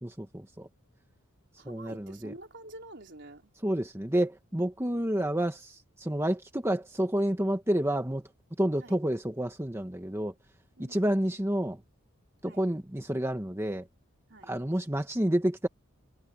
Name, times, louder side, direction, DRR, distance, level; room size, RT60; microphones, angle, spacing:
voice 1, 0.0-0.7 1.6-2.3 3.6-8.3 8.6-10.3 10.8-11.8 12.4-13.9 14.4-15.7, right 1 dB, 10° right, 1.3 m, -29 dB
voice 2, 1.6-3.5 8.8-9.0 10.8-11.4 12.4-12.6 14.3-14.5, right 2 dB, 55° right, 4.0 m, -48 dB
head